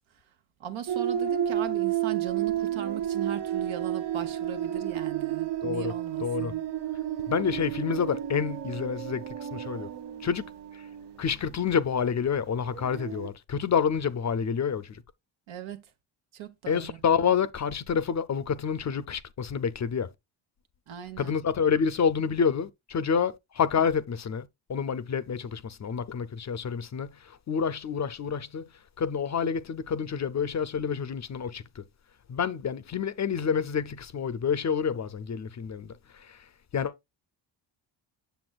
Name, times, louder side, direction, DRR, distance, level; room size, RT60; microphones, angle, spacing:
voice 1, 0.6-6.6 15.5-15.8 16.3-17.0 20.9-21.3, right 10 dB, 75° right, 1.2 m, -38 dB
sound 1, 0.9-11.2 12.6-13.3, right 11 dB, 55° right, 0.8 m, -31 dB
voice 2, 5.6-5.9 6.2-6.5 7.3-9.9 10.2-10.9 11.2-15.0 16.7-20.1 21.2-28.7 29.0-31.8 32.3-36.5 36.7-36.9, left 6 dB, 35° left, 0.5 m, -28 dB
7.8 x 6.8 x 2.3 m
cardioid pair, 120°, 47 cm